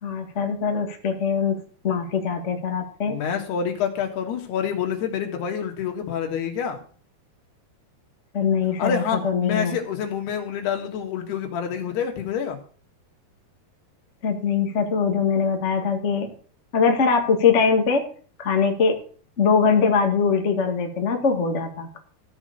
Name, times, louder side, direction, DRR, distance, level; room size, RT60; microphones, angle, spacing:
voice 1, 0.0-1.6 1.8-3.2 8.3-9.7 14.2-16.3 16.7-18.1 18.4-19.0 19.4-22.0, left 5 dB, 45° left, 3 dB, 0.9 m, -22 dB
voice 2, 3.1-6.8 8.8-12.6, left 7 dB, 80° left, 4 dB, 3.7 m, -27 dB
14.0 x 6.1 x 6.8 m, 0.43 s
omnidirectional pair, 4.6 m